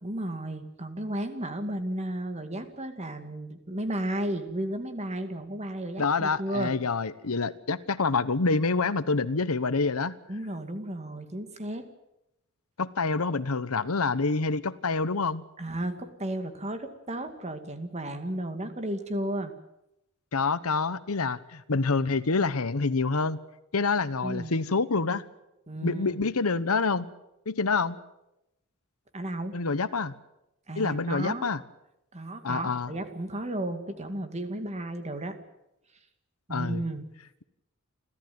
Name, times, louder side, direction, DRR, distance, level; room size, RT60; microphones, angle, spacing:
voice 1, 0.0-6.7 10.3-11.8 15.6-19.5 24.2-24.5 25.7-26.3 29.1-29.5 30.7-31.5 32.1-35.3 36.5-37.0, right 1 dB, 30° right, 8 dB, 2.2 m, -33 dB
voice 2, 6.0-10.1 12.8-15.4 20.3-23.4 23.7-25.2 25.8-27.1 27.5-28.0 29.5-30.2 30.8-31.6 32.4-32.9 36.5-36.8, left 4 dB, 85° left, 13 dB, 1.1 m, -27 dB
29.5 x 13.0 x 9.5 m, 0.90 s
head